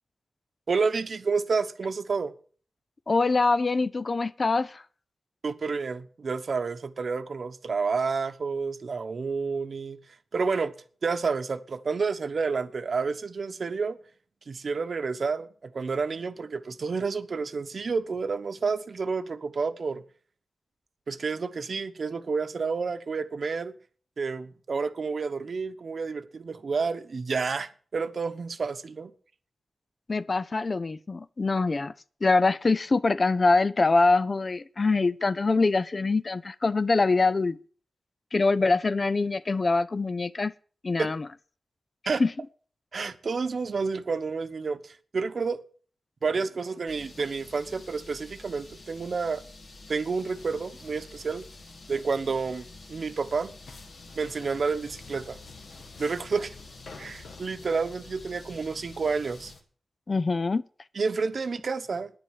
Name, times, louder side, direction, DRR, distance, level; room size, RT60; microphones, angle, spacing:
voice 1, 0.7-2.3 5.4-10.0 10.3-10.7 11.0-14.0 14.5-20.0 21.1-23.7 24.2-29.1 41.0-41.1 42.1-42.2 42.9-45.6 46.2-49.4 49.9-51.5 51.9-53.5 54.1-55.4 56.0-56.5 57.0-59.5 60.9-62.1, right 4 dB, 60° right, 1.0 m, -30 dB
voice 2, 3.1-4.8 30.1-31.9 32.2-37.6 38.3-40.5 40.8-41.2 42.2-42.3 60.1-60.6, left 3 dB, 40° left, 0.5 m, -24 dB
sound 1, 46.9-59.6, left 2 dB, 70° left, 2.8 m, -49 dB
sound 2, 50.0-59.6, left 4 dB, 90° left, 1.9 m, -51 dB
10.5 x 9.8 x 6.3 m
wide cardioid pair, 100°, 0 cm